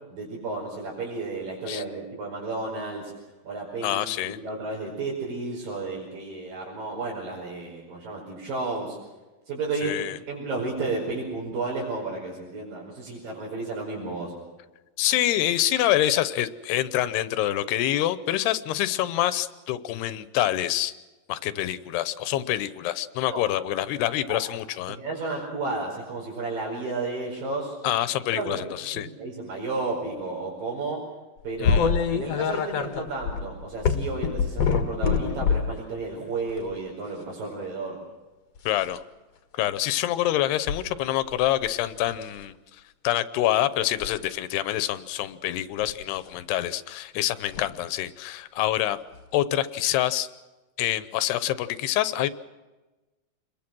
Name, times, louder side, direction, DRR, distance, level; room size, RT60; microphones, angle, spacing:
voice 1, 0.1-3.1 3.4-9.0 9.5-14.3 23.3-23.4 24.3-24.4 24.9-27.7 28.3-28.7 28.9-31.0 31.4-38.0, right 3 dB, 60° right, -4 dB, 6.8 m, -32 dB
voice 2, 3.8-4.4 9.8-10.2 15.0-20.9 21.3-25.0 27.8-29.1 31.6-31.9 38.7-39.0 39.5-49.0 49.3-50.3 50.8-52.3, left 13 dB, 90° left, 13 dB, 3.0 m, -26 dB
sound 1, 31.6-35.8 36.5-36.8 38.6-38.9 40.7-40.8 41.3-41.7 42.1-42.4 43.8-44.2 45.8-46.0 47.5-47.6 49.1-49.2 49.9-50.0, left 6 dB, 55° left, 2.1 m, -25 dB
28.5 x 22.0 x 6.2 m, 1.1 s
omnidirectional pair, 4.6 m